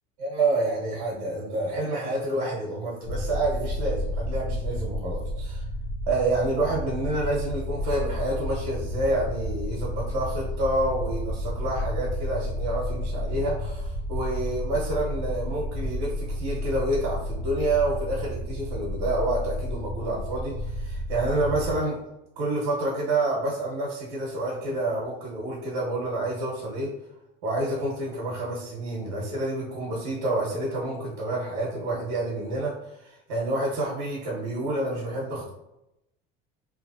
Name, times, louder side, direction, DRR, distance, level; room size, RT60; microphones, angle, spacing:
voice 1, 0.2-5.6 6.1-22.0 22.4-26.9 27.4-32.8 33.0-35.5, right 2 dB, 75° right, -4 dB, 1.3 m, -28 dB
sound 1, 3.0-21.7, left 1 dB, 60° left, 1.2 m, -31 dB
3.2 x 3.1 x 2.7 m, 0.88 s
cardioid pair, 165°, 21 cm